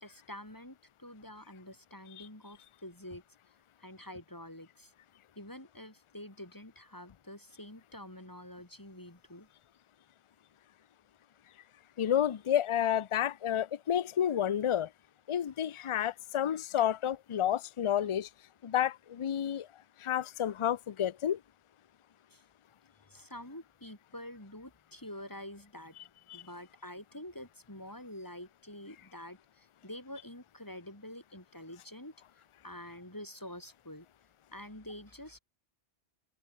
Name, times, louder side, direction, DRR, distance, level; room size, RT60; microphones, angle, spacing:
voice 1, 0.0-3.2 3.8-4.9 5.4-9.5 22.3-22.4 23.1-26.0 26.3-34.1 34.5-35.4, left 1 dB, 20° left, 2.8 m, -47 dB
voice 2, 12.0-14.9 15.3-18.3 18.6-19.7 20.0-21.4 26.3-26.4, left 10 dB, 40° left, 0.5 m, -30 dB
omnidirectional pair, 1.1 m